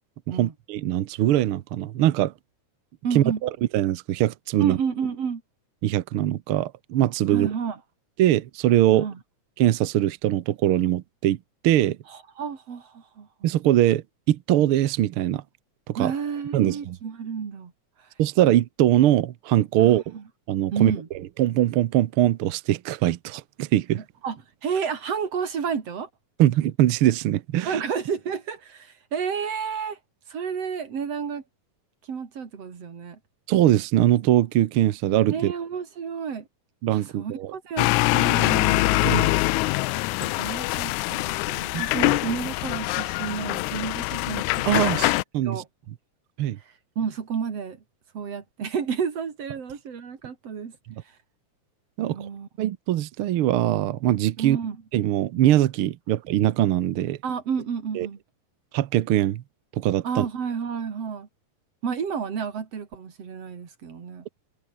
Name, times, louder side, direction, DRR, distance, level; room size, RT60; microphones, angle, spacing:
voice 1, 0.4-2.3 3.1-4.8 5.8-7.5 8.2-9.1 9.6-11.4 11.6-12.0 13.4-15.4 15.9-16.1 16.5-17.0 18.2-20.1 20.5-20.9 21.4-24.0 26.4-27.8 33.5-35.5 36.8-37.5 39.0-39.3 41.7-41.8 44.7-45.6 46.4-46.6 52.0-52.3 52.6-54.6 54.9-57.2 57.9-58.1 58.7-59.4 59.8-60.3, right 13 dB, 70° right, 1.3 m, -22 dB
voice 2, 3.0-3.4 4.6-5.4 7.3-7.8 8.9-9.2 12.1-13.3 16.0-17.7 19.8-20.2 20.7-21.1 23.9-26.1 27.6-30.0 30.3-31.4 32.1-33.2 35.3-36.4 36.9-39.3 40.2-45.2 45.5-45.7 47.0-47.8 48.1-50.7 52.0-52.5 54.4-54.8 57.2-58.2 60.0-61.3 61.8-64.3, right 6 dB, 55° right, 3.7 m, -31 dB
sound 1, 37.8-45.2, left 21 dB, 80° left, 1.9 m, -24 dB
omnidirectional pair, 3.5 m